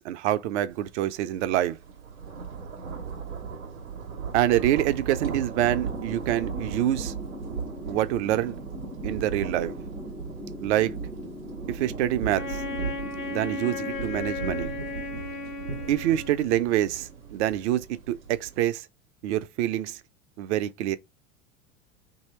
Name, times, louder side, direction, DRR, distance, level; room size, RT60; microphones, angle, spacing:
voice 1, 0.0-1.8 4.3-7.1 7.8-8.6 9.0-9.7 10.6-11.0 11.7-12.6 13.3-14.7 15.9-18.9 19.2-20.0 20.4-21.0, right 13 dB, 60° right, 0.5 m, -26 dB
sound 1, 0.9-1.1 1.4-18.7, right 6 dB, 90° right, 0.8 m, -37 dB
sound 2, 5.6-14.2, left 2 dB, ahead, 0.4 m, -41 dB
Wind instrument woodwind instrument, 12.3-16.7, left 4 dB, 85° left, 1.0 m, -35 dB
3.0 x 2.7 x 4.2 m
hypercardioid pair, 85°, 40 cm